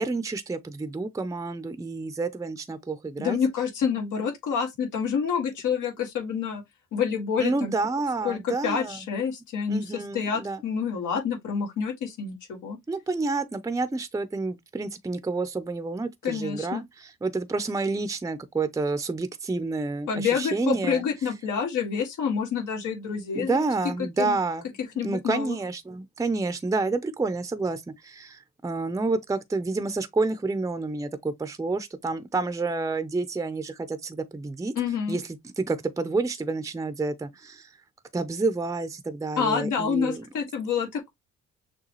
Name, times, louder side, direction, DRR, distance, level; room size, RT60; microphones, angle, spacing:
voice 1, 0.0-3.4 7.4-9.0 9.7-10.6 12.9-21.0 23.3-24.7 25.0-34.7 35.1-37.7 38.1-40.2, right 3 dB, 10° right, 0.6 m, -29 dB
voice 2, 3.2-6.6 6.9-7.7 8.2-12.8 16.2-16.8 20.1-23.6 24.2-24.4 25.0-25.6 34.8-35.2 39.4-41.1, left 6 dB, 80° left, 1.9 m, -28 dB
6.4 x 2.3 x 3.1 m
cardioid pair, 90°, 30 cm